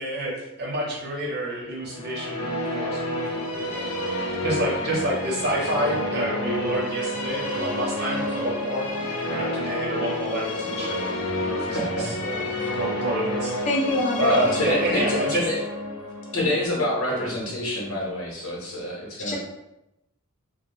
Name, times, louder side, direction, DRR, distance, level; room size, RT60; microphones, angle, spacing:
voice 1, 0.0-3.9 4.4-12.5 12.7-13.6 14.2-15.5 17.1-17.2, right 1 dB, 50° right, -3 dB, 0.7 m, -29 dB
sound 1, 1.8-17.9, left 1 dB, 90° left, 0.5 m, -29 dB
voice 2, 11.7-12.2 14.3-15.0 15.3-15.6 16.3-19.4, left 1 dB, 70° left, -3 dB, 0.9 m, -26 dB
voice 3, 13.7-14.4 19.2-19.4, left 2 dB, 35° left, -2 dB, 0.4 m, -24 dB
2.5 x 2.0 x 3.0 m, 0.90 s
head